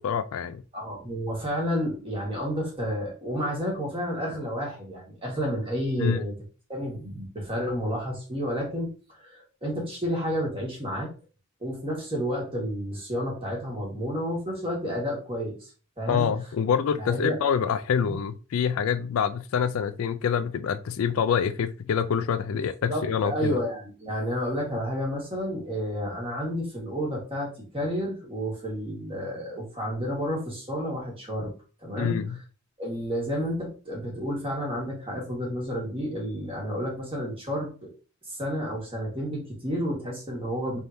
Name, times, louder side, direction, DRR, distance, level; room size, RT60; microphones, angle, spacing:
voice 1, 0.0-0.6 6.0-6.2 16.1-23.6 32.0-32.4, left 7 dB, 65° left, 0.3 m, -26 dB
voice 2, 0.7-6.3 6.7-8.9 9.2-11.1 11.6-15.7 16.0-16.3 17.0-17.4 18.0-18.2 22.9-27.5 27.7-31.5 31.8-32.2 32.8-37.9 38.3-40.8, equal, 25° right, 1.5 m, -30 dB
4.3 x 3.5 x 2.6 m
head